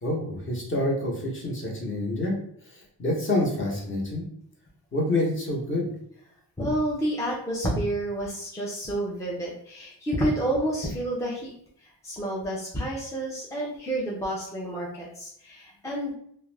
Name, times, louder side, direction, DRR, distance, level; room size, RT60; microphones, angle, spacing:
voice 1, 0.0-2.3 2.7-4.2 4.9-5.9, left 1 dB, 30° left, -2 dB, 0.8 m, -27 dB
voice 2, 6.6-11.5 12.0-16.1, right 1 dB, 10° left, -4 dB, 0.3 m, -29 dB
2.3 x 2.0 x 3.1 m, 0.68 s
cardioid pair, 125°, 42 cm